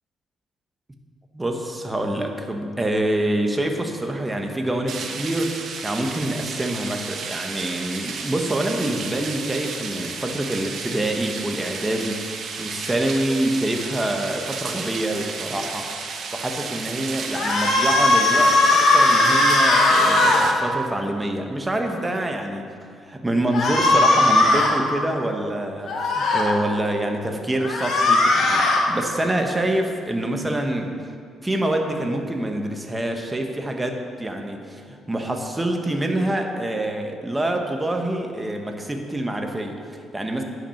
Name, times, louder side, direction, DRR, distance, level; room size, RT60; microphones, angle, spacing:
voice 1, 1.3-12.2 12.6-15.9 16.3-22.7 23.0-30.9 31.4-40.4, right 1 dB, 15° right, 3 dB, 1.1 m, -26 dB
sound 1, 4.9-20.5, right 5 dB, 65° right, 1.0 m, -33 dB
sound 2, 17.3-20.4 23.5-24.7 25.9-26.4 27.6-28.8, left 2 dB, 65° left, 1.7 m, -18 dB
9.9 x 6.0 x 5.7 m, 2.3 s
cardioid pair, 90°, 0 cm